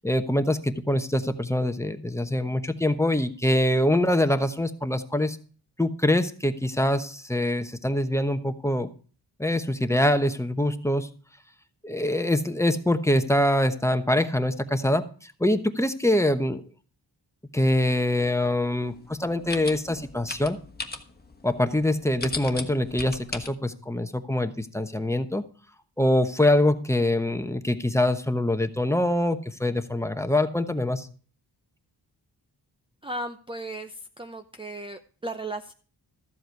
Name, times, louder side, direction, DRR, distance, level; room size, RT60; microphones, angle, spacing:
voice 1, 0.0-5.4 5.8-8.9 9.4-11.1 11.8-16.6 17.5-20.6 21.4-25.4 26.0-31.1, left 1 dB, 5° left, 9 dB, 1.0 m, -24 dB
sound 1, 18.1-23.5, left 3 dB, 25° left, 1.3 m, -39 dB
voice 2, 33.0-35.7, right 2 dB, 15° right, 7 dB, 0.7 m, -36 dB
14.0 x 7.9 x 4.6 m, 0.40 s
wide cardioid pair, 95°, 41 cm